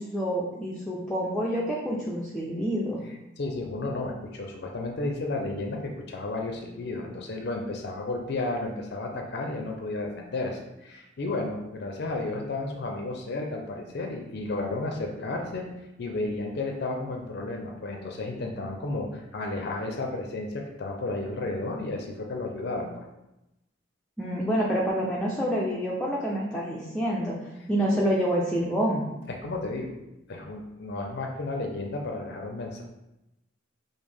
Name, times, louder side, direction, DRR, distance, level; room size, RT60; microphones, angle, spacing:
voice 1, 0.0-3.0 24.2-27.4 27.7-29.0, equal, 5° left, -5 dB, 0.4 m, -27 dB
voice 2, 3.4-15.7 16.0-23.1 29.4-29.9 30.3-32.8, left 2 dB, 60° left, 2 dB, 0.5 m, -32 dB
5.1 x 2.0 x 3.4 m, 0.92 s
head